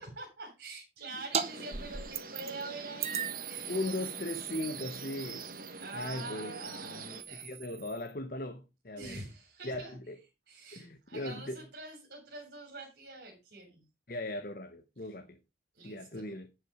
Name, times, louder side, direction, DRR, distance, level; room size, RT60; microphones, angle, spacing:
voice 1, 0.0-3.9 5.8-7.5 8.9-9.9 10.5-13.9 15.7-16.3, right 3 dB, 70° right, 3.7 m, -45 dB
sound 1, 1.3-1.5 1.7-2.6 3.0-8.1, right 7 dB, 35° right, 1.0 m, -39 dB
sound 2, 1.3-7.2, right 4 dB, 50° right, 1.4 m, -45 dB
voice 2, 3.7-5.4 5.9-9.2 9.6-10.2 10.7-11.6 14.1-15.4 15.8-16.5, left 1 dB, 50° left, 1.1 m, -38 dB
10.5 x 6.3 x 4.9 m
head